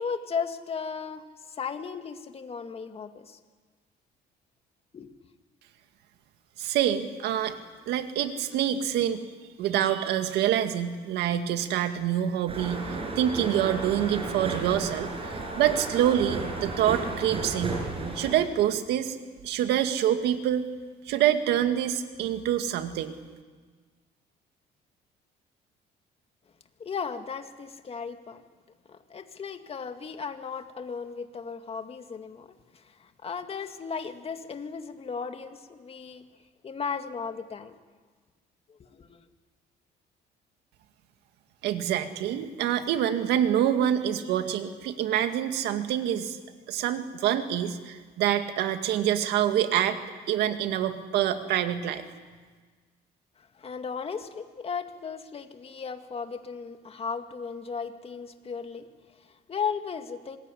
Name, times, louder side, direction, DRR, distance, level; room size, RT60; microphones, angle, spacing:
voice 1, 0.0-3.4 4.9-5.1 26.8-28.4 28.9-36.3 36.6-37.8 38.7-39.3 53.4-60.4, left 6 dB, 35° left, 7 dB, 2.1 m, -36 dB
voice 2, 6.6-7.5 7.9-9.2 9.6-17.8 18.1-19.2 19.4-20.6 21.1-23.2 41.6-46.4 46.7-50.0 50.3-52.0, right 10 dB, 85° right, 7 dB, 2.1 m, -26 dB
sound 1, 12.5-18.4, right 3 dB, 35° right, 6.8 m, -33 dB
26.0 x 21.0 x 10.0 m, 1.5 s
cardioid pair, 110°, 17 cm